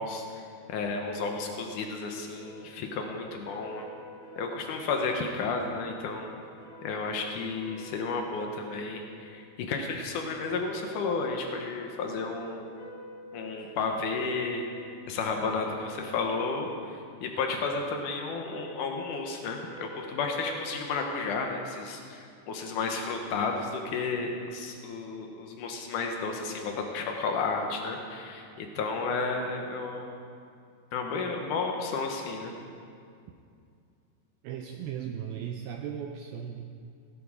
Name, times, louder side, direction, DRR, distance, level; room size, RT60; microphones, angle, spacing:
voice 1, 0.0-3.9 4.4-6.3 6.8-12.7 13.3-14.6 15.1-30.2 30.9-32.5, left 4 dB, 75° left, 3 dB, 1.9 m, -32 dB
sound 1, 2.4-15.3 15.7-17.7 18.5-21.2, left 1 dB, 50° left, 5.9 m, -49 dB
voice 2, 34.4-36.6, right 8 dB, 85° right, 4 dB, 2.2 m, -37 dB
17.0 x 11.0 x 4.8 m, 2.4 s
omnidirectional pair, 4.9 m